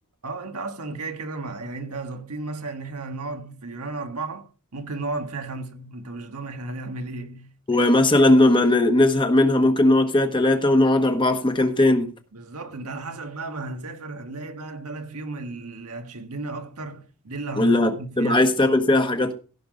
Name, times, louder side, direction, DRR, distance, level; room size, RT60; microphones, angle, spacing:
voice 1, 0.2-7.9 12.3-18.8, right 3 dB, 85° right, 1.7 m, -34 dB
voice 2, 7.7-12.1 17.6-19.3, left 1 dB, 20° left, 1.3 m, -18 dB
16.0 x 5.9 x 5.1 m
head